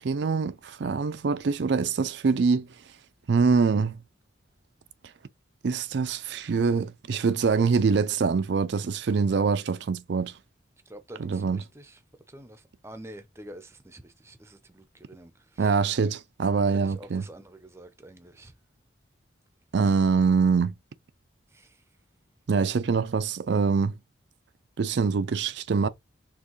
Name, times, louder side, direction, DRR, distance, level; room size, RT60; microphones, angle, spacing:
voice 1, 0.0-2.7 3.3-4.0 5.6-10.3 11.2-11.6 15.6-17.2 19.7-20.7 22.5-23.9 24.8-25.9, right 5 dB, 65° right, 0.4 m, -24 dB
voice 2, 10.9-12.0 12.3-15.7 16.7-18.5 19.8-20.0 21.5-21.8, right 1 dB, 15° right, 0.6 m, -47 dB
4.5 x 3.2 x 3.1 m
head